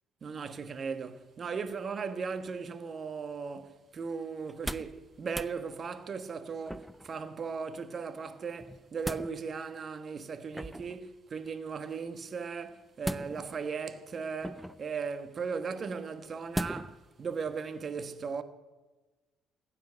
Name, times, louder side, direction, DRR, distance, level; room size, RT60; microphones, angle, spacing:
voice 1, 0.2-18.4, right 5 dB, 40° right, 1.3 m, -37 dB
sound 1, 4.4-5.0 5.3-5.5 6.7-7.1 8.6-9.3 10.5-11.0 13.0-13.6 14.4-14.9 16.5-17.0 17.5-17.6, equal, 5° right, 0.6 m, -37 dB
15.5 x 9.0 x 9.5 m
figure-of-eight pair, 50°, 0 cm